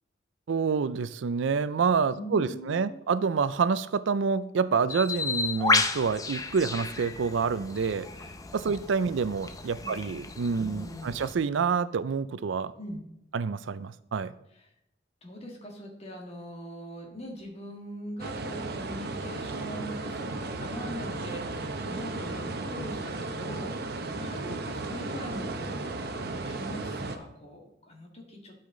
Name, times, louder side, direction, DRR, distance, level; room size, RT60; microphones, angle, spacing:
voice 1, 0.5-8.1 8.5-12.7 13.3-14.3, right 5 dB, 80° right, 15 dB, 0.4 m, -27 dB
voice 2, 2.1-2.9 9.1-9.3 9.8-10.1 10.6-11.1 12.8-13.0 15.2-25.9 26.4-28.5, equal, 35° left, 1 dB, 1.8 m, -41 dB
Bird, 4.9-11.3, left 4 dB, 20° left, 0.5 m, -32 dB
sound 1, 18.2-27.2, right 2 dB, 55° right, 0.8 m, -35 dB
12.0 x 5.6 x 3.8 m, 0.82 s
head